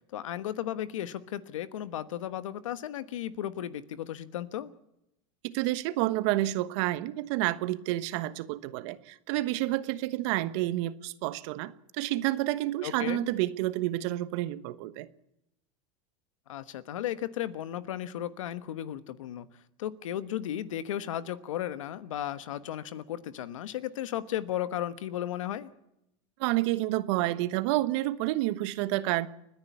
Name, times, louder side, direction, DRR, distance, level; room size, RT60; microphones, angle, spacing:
voice 1, 0.1-4.7 12.8-13.2 16.5-19.5 19.8-25.7, left 11 dB, 90° left, 13 dB, 1.3 m, -35 dB
voice 2, 5.4-15.1 26.4-29.3, right 16 dB, 65° right, 13 dB, 1.2 m, -29 dB
30.0 x 10.5 x 8.5 m, 0.84 s
supercardioid pair, 115°, 16 cm